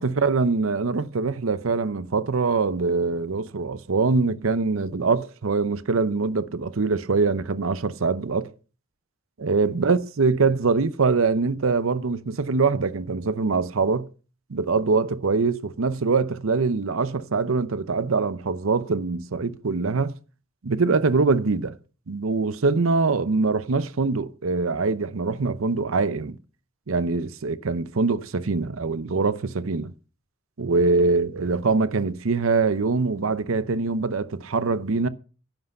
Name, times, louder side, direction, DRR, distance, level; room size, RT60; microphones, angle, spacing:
voice 1, 0.0-8.5 9.4-14.1 14.5-20.1 20.6-21.8 22.1-26.4 26.9-29.9 30.6-35.1, right 4 dB, 75° right, 0.7 m, -23 dB
10.5 x 8.1 x 5.4 m
head